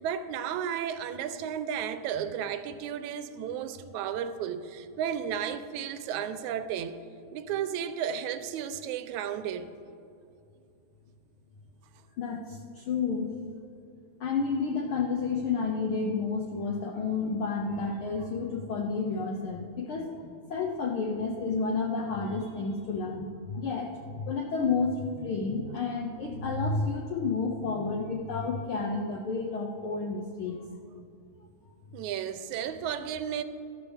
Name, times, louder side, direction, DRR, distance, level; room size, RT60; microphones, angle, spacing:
voice 1, 0.0-6.9 7.3-9.7 31.9-33.4, right 8 dB, 80° right, 11 dB, 1.9 m, -33 dB
voice 2, 12.2-13.3 14.2-30.6, left 4 dB, 85° left, 2 dB, 1.2 m, -31 dB
13.0 x 12.5 x 3.4 m, 2.6 s
omnidirectional pair, 3.4 m